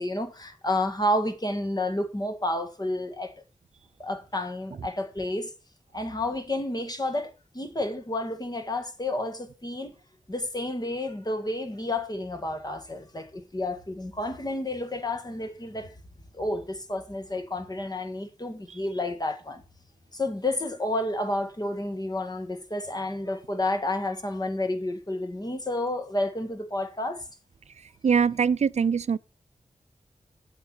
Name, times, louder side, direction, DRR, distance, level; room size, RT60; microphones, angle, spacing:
voice 1, 0.0-3.3 4.0-5.5 5.9-10.0 10.3-15.9 16.3-19.6 20.1-27.2, left 1 dB, 30° left, 1.9 m, -30 dB
voice 2, 28.0-29.2, right 6 dB, 60° right, 0.4 m, -22 dB
8.4 x 8.2 x 4.5 m
wide cardioid pair, 80°, 13 cm